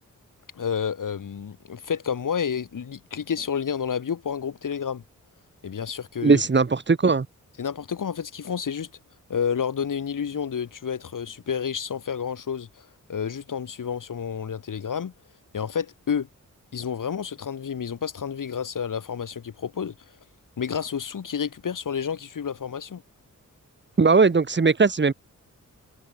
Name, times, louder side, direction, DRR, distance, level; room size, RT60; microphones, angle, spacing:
voice 1, 0.5-5.0 5.6-6.4 7.6-8.9 9.3-15.1 15.5-16.3 16.7-19.9 20.6-23.0, left 7 dB, 85° left, 7.7 m, -30 dB
voice 2, 6.2-7.3 24.0-25.1, right 4 dB, 35° right, 3.3 m, -19 dB
wide cardioid pair, 140°, 31 cm